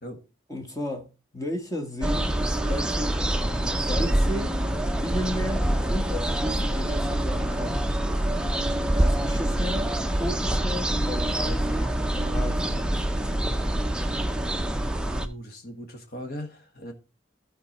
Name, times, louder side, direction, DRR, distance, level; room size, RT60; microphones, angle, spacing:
voice 1, 0.5-3.3 3.7-4.6 5.0-7.8 8.9-12.8, left 1 dB, 15° left, 1.5 m, -34 dB
sound 1, 2.0-15.3, right 1 dB, 5° right, 0.5 m, -25 dB
voice 2, 15.1-16.9, equal, 50° left, 1.6 m, -39 dB
13.5 x 4.5 x 4.1 m
head